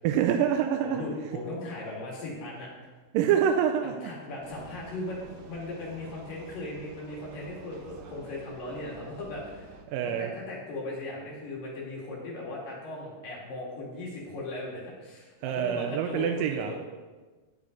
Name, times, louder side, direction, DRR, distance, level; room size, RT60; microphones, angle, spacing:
voice 1, 0.0-1.0 3.1-4.1 9.9-10.3 15.4-16.7, right 9 dB, 85° right, 4 dB, 2.2 m, -26 dB
voice 2, 0.8-2.7 3.8-16.8, left 2 dB, 75° left, -4 dB, 4.0 m, -38 dB
Vehicle, 4.4-9.9, right 3 dB, 65° right, 1.6 m, -49 dB
9.6 x 9.6 x 3.9 m, 1.3 s
omnidirectional pair, 3.9 m